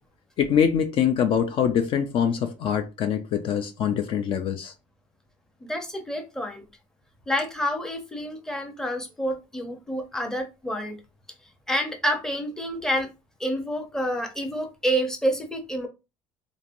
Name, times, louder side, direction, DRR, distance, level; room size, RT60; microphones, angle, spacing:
voice 1, 0.4-4.7, left 8 dB, 50° left, 0.4 m, -24 dB
voice 2, 5.6-6.6 7.3-11.0 11.7-13.1 13.4-15.9, equal, 5° left, 0.7 m, -28 dB
3.1 x 2.5 x 2.6 m
cardioid pair, 115°, 12 cm